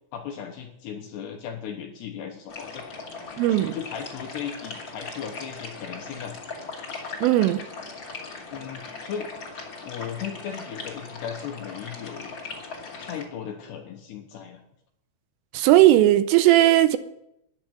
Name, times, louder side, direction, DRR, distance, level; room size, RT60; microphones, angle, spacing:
voice 1, 0.1-2.9 3.5-6.4 8.5-9.3 9.8-12.3 13.0-14.6, left 8 dB, 75° left, 2.6 m, -36 dB
sound 1, 2.5-13.3, left 4 dB, 35° left, 2.0 m, -39 dB
voice 2, 3.4-3.7 7.2-7.6 15.5-17.0, right 14 dB, 80° right, 3.1 m, -17 dB
13.5 x 10.5 x 8.0 m
omnidirectional pair, 6.0 m